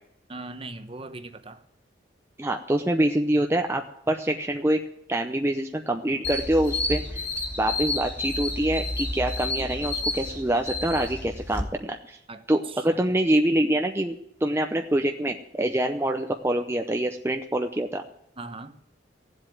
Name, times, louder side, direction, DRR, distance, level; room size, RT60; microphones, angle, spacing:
voice 1, 0.3-1.6 12.3-13.1 18.4-18.7, right 3 dB, 30° right, 9 dB, 1.0 m, -40 dB
voice 2, 2.4-4.8 5.1-7.3 7.6-12.2 12.5-14.1 14.4-18.0, right 1 dB, 15° right, 3 dB, 0.7 m, -25 dB
sound 1, 6.2-11.6, left 2 dB, 10° left, 2.5 m, -30 dB
16.5 x 7.8 x 9.2 m, 0.78 s
head